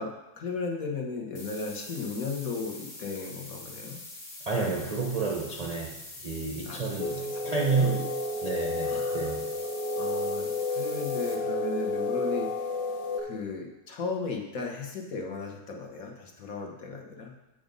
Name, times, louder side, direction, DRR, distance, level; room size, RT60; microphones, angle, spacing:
voice 1, 0.0-4.0 6.6-6.8 7.5-8.1 8.8-9.3 10.0-12.7 13.2-17.3, left 4 dB, 55° left, 1 dB, 1.4 m, -36 dB
sound 1, 1.3-11.3, left 2 dB, 35° left, 1.4 m, -44 dB
voice 2, 4.5-8.1 8.4-9.5, right 5 dB, 60° right, -1 dB, 0.4 m, -30 dB
sound 2, 7.0-13.2, left 2 dB, 75° left, 1.4 m, -31 dB
7.7 x 5.1 x 5.2 m, 0.97 s
omnidirectional pair, 1.9 m